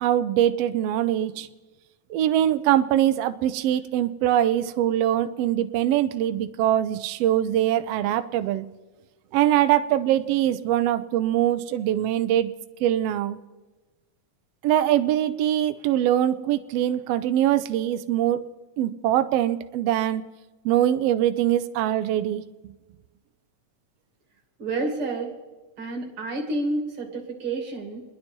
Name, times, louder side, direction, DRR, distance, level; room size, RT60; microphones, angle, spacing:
voice 1, 0.0-1.5 2.1-8.7 9.3-12.5 12.8-13.4 14.6-18.4 18.8-20.2 20.6-22.7, right 12 dB, 75° right, 10 dB, 1.5 m, -23 dB
voice 2, 24.6-25.3 25.8-28.0, right 2 dB, 50° right, 1 dB, 3.0 m, -29 dB
29.5 x 10.5 x 4.4 m, 1.2 s
omnidirectional pair, 3.3 m